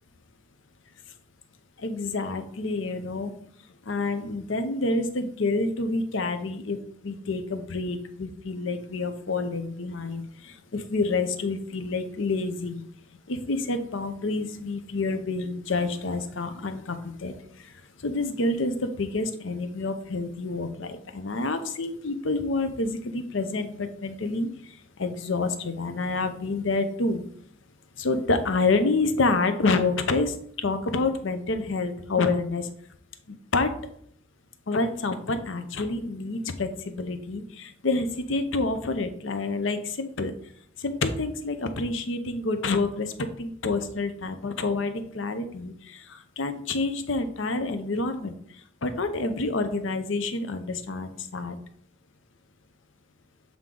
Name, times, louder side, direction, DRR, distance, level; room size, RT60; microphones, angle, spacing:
voice 1, 1.8-3.3 3.9-6.8 7.0-12.8 13.3-17.3 18.0-24.5 25.0-27.2 28.0-32.7 33.3-33.7 34.7-40.3 40.8-43.1 43.4-48.3 48.8-51.6, left 3 dB, 70° left, 9 dB, 0.7 m, -28 dB
7.3 x 3.6 x 3.8 m, 0.65 s
head